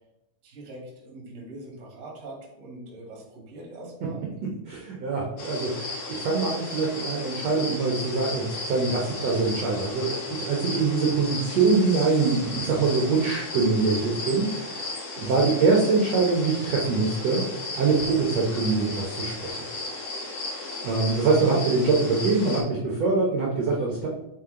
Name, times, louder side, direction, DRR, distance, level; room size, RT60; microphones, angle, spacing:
voice 1, 0.4-4.3 15.1-15.5, right 2 dB, 65° right, -2 dB, 0.7 m, -42 dB
voice 2, 4.4-17.4 17.8-19.6 20.8-24.1, right 4 dB, 90° right, -2 dB, 1.4 m, -24 dB
sound 1, 5.4-22.6, left 2 dB, 60° left, 1.6 m, -35 dB
7.5 x 3.8 x 3.8 m, 0.89 s
omnidirectional pair, 4.6 m